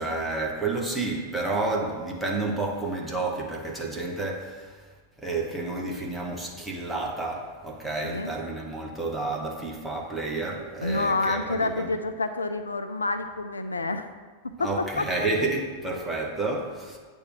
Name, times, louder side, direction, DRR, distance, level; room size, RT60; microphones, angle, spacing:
voice 1, 0.0-4.9 5.2-11.9 14.6-17.0, right 3 dB, 5° right, -2 dB, 1.4 m, -30 dB
voice 2, 10.8-14.1 14.6-14.7 15.0-15.3, left 3 dB, 75° left, 9 dB, 0.4 m, -28 dB
8.6 x 3.5 x 6.1 m, 1.4 s
figure-of-eight pair, 90°, 0 cm